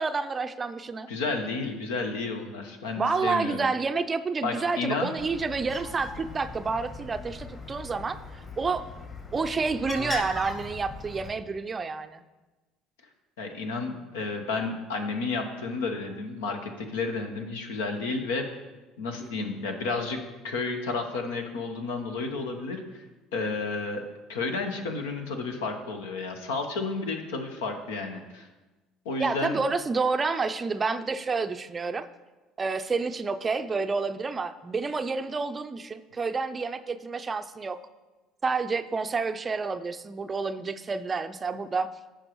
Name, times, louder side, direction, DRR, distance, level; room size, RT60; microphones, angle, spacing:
voice 1, 0.0-1.1 3.0-8.2 8.6-8.8 9.3-12.2 19.2-19.3 29.2-32.1 32.6-37.8 38.4-41.9, right 4 dB, 30° right, 10 dB, 0.5 m, -29 dB
voice 2, 1.1-3.6 4.4-5.1 13.4-18.5 19.0-23.0 23.3-24.0 24.3-28.5 29.0-29.6, left 3 dB, 75° left, 5 dB, 1.0 m, -31 dB
Bird, 5.2-11.3, left 2 dB, 30° left, 2.2 m, -39 dB
15.0 x 5.1 x 3.1 m, 1.2 s
hypercardioid pair, 65°, 0 cm